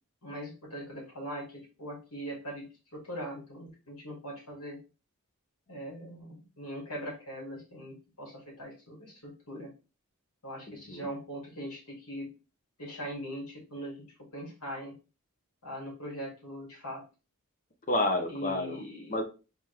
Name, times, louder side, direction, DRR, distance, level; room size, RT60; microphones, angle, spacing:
voice 1, 0.2-2.7 2.9-4.8 5.7-9.7 10.4-12.3 12.8-13.9 14.3-14.9 15.6-17.0 18.3-19.1, equal, 80° left, -2 dB, 2.5 m, -41 dB
voice 2, 10.7-11.1 17.9-18.8 19.1-19.2, left 2 dB, 35° left, 4 dB, 0.9 m, -30 dB
4.1 x 3.5 x 3.4 m, 0.32 s
head